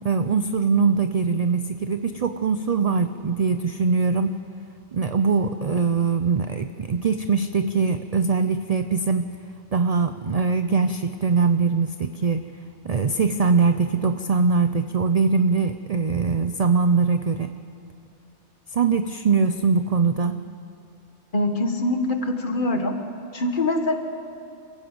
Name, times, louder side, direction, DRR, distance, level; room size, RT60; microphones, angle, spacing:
voice 1, 0.0-4.4 4.9-9.3 9.7-12.4 12.8-17.5 18.7-20.4, right 5 dB, 40° right, 9 dB, 0.6 m, -22 dB
voice 2, 21.3-23.0 23.3-24.0, left 2 dB, 45° left, 5 dB, 1.9 m, -23 dB
28.0 x 15.0 x 7.9 m, 2.6 s
omnidirectional pair, 1.2 m